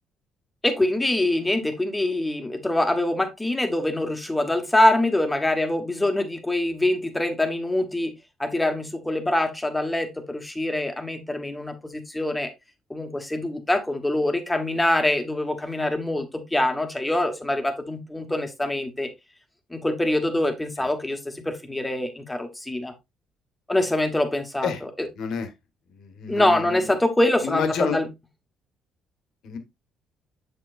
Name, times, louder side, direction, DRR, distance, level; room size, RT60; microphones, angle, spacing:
voice 1, 0.6-8.1 8.4-12.5 12.9-19.1 19.7-22.9 23.7-25.1 26.3-28.1, left 1 dB, 10° left, 1.2 m, -24 dB
voice 2, 25.1-25.5 25.9-26.9 27.4-28.0 29.4-29.6, left 6 dB, 70° left, 1.4 m, -29 dB
7.3 x 6.8 x 2.5 m
cardioid pair, 130°, 0 cm